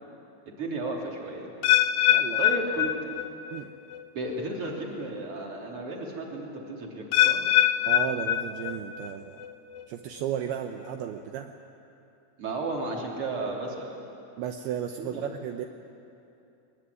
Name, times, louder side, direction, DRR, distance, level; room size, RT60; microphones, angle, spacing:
voice 1, 0.5-1.5 2.4-3.1 4.1-7.4 12.4-13.9 15.0-15.3, right 2 dB, 35° right, -1 dB, 3.8 m, -33 dB
sound 1, 1.6-3.6 3.9-4.3 5.0-5.1 7.1-9.1 9.4-9.8 10.5-10.6, left 12 dB, 80° left, 2.3 m, -24 dB
voice 2, 7.9-9.4 9.9-11.5 14.4-15.7, right 9 dB, 80° right, 5 dB, 2.7 m, -34 dB
21.5 x 21.5 x 9.7 m, 2.7 s
omnidirectional pair, 4.7 m